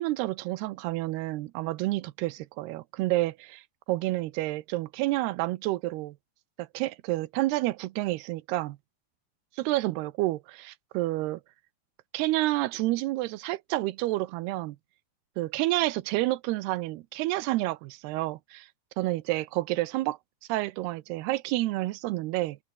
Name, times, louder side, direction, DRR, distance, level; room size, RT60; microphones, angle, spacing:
voice 1, 0.0-3.6 3.9-6.2 6.6-8.8 9.6-11.4 12.1-14.8 15.4-18.7 19.0-20.2 20.5-22.6, right 18 dB, 90° right, 2.9 m, -29 dB
omnidirectional pair, 4.5 m